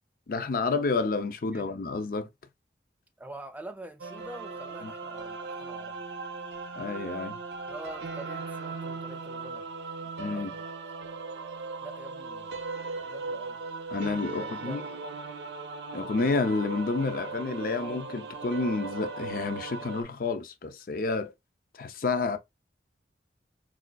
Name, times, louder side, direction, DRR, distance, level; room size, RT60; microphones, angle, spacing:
voice 1, 0.3-2.3 4.8-4.9 6.8-7.4 10.2-10.5 13.9-14.8 15.9-21.3 21.8-22.4, left 3 dB, 50° left, 0.4 m, -30 dB
voice 2, 1.5-1.8 3.2-6.0 7.7-9.7 10.0-10.7 11.8-12.5 13.0-13.6 14.4-15.0, right 1 dB, 10° right, 0.4 m, -46 dB
sound 1, 4.0-20.0, right 3 dB, 75° right, 0.6 m, -38 dB
4.7 x 2.4 x 2.2 m
head